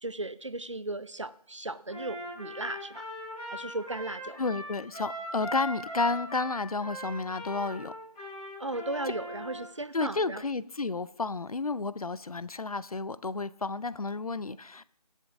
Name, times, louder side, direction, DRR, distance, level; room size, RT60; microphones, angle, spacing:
voice 1, 0.0-3.1 3.5-4.4 8.6-10.4, right 2 dB, 50° right, 0.5 m, -36 dB
Trumpet, 1.9-9.6, left 1 dB, 5° left, 5.0 m, -40 dB
voice 2, 4.4-7.9 9.9-14.8, left 3 dB, 60° left, 0.5 m, -31 dB
23.0 x 8.0 x 2.6 m
figure-of-eight pair, 180°, 21 cm